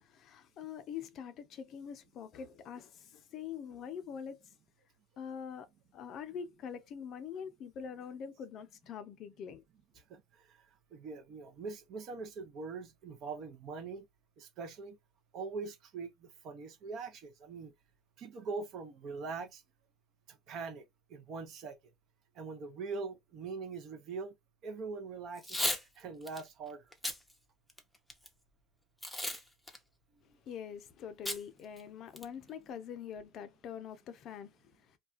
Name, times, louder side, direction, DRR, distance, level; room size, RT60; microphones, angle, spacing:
voice 1, 0.0-4.4 5.2-5.7 5.9-9.6 30.5-35.0, left 7 dB, 45° left, 0.5 m, -44 dB
voice 2, 10.1-10.6 10.9-14.0 14.4-15.0 15.3-17.7 18.2-19.6 20.3-20.8 21.1-21.8 22.4-24.3 24.6-25.6 26.0-26.8 30.3-30.4, right 4 dB, 50° right, 0.6 m, -42 dB
Packing tape duct tape / Tearing, 25.4-25.8 26.3-26.4 26.9-27.2 27.7-28.3 29.0-29.4 29.7-29.8 31.3-31.4 31.8-31.9 32.2-32.5, left 1 dB, 5° left, 0.6 m, -34 dB
2.3 x 2.2 x 2.4 m
hypercardioid pair, 95°, 0 cm